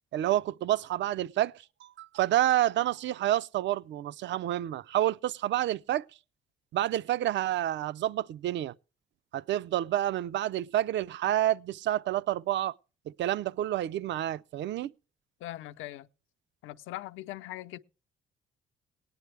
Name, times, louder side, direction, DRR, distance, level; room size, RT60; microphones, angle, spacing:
voice 1, 0.1-1.5 1.8-6.0 6.7-8.7 9.3-12.7 13.1-14.9, right 13 dB, 65° right, 0.5 m, -29 dB
voice 2, 15.4-16.1 16.6-17.8, left 15 dB, 90° left, 0.7 m, -40 dB
18.5 x 9.6 x 3.3 m
cardioid pair, 90°, 20 cm